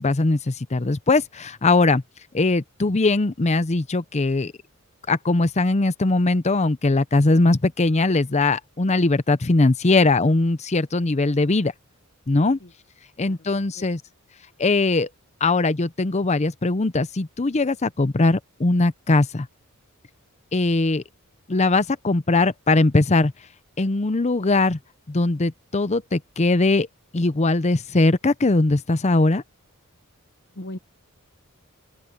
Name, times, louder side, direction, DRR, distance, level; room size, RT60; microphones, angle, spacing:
voice 1, 0.0-2.0 2.3-4.5 5.1-11.7 12.3-12.6 13.2-14.0 14.6-15.1 15.4-19.5 20.5-21.0 21.5-23.3 23.8-24.8 25.1-26.9 27.1-29.4, left 2 dB, 30° left, 0.7 m, -20 dB
voice 2, 13.2-13.9 30.5-30.8, left 1 dB, 50° left, 1.1 m, -39 dB
open air
head